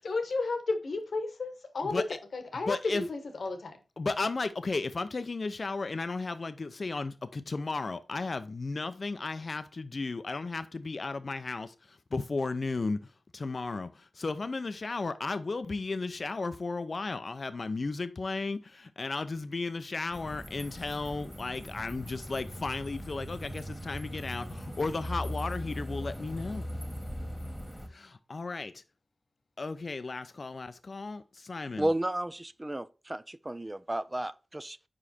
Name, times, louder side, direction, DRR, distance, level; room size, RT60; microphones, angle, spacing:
voice 1, 0.0-2.0 2.3-3.8, left 3 dB, 80° left, 1.1 m, -32 dB
voice 2, 1.8-2.2 2.7-3.0 4.0-26.7 27.9-28.8 29.6-31.9, left 3 dB, 60° left, 0.5 m, -34 dB
sound 1, 20.1-27.9, equal, ahead, 1.7 m, -40 dB
voice 3, 31.8-34.8, right 1 dB, 25° right, 0.5 m, -33 dB
5.1 x 4.7 x 4.2 m
cardioid pair, 45°, 0 cm